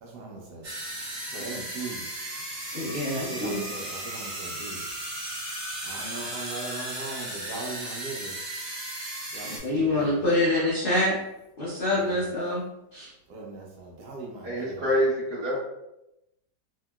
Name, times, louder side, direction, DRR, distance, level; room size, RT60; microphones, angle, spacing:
voice 1, 0.0-0.7 1.3-2.1 3.1-4.8 5.9-8.4 9.3-10.2 11.9-12.3 13.3-14.8, right 3 dB, 75° right, -1 dB, 1.1 m, -39 dB
sound 1, 0.6-9.6, right 1 dB, 55° right, 1.2 m, -36 dB
voice 2, 2.7-3.6 9.6-11.2 11.6-12.6 12.9-13.1, left 1 dB, 85° left, -8 dB, 0.4 m, -25 dB
voice 3, 14.4-15.6, equal, 30° right, -7 dB, 1.1 m, -26 dB
2.8 x 2.8 x 2.2 m, 0.90 s
omnidirectional pair, 1.9 m